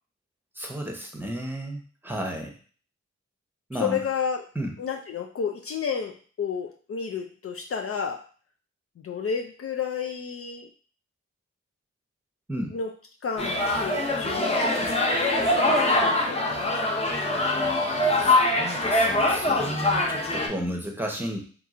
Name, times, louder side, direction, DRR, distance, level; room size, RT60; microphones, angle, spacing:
voice 1, 0.5-2.6 3.7-4.0 4.5-4.7 12.5-12.8 18.2-21.4, right 1 dB, 5° right, 1 dB, 0.9 m, -33 dB
voice 2, 3.7-4.4 4.8-8.2 9.0-10.7 12.7-12.9 13.2-15.0 15.5-17.0, left 6 dB, 50° left, 3 dB, 0.4 m, -31 dB
sound 1, 13.4-20.5, left 2 dB, 20° left, 0.8 m, -23 dB
2.9 x 2.4 x 3.6 m, 0.41 s
cardioid pair, 50°, 30 cm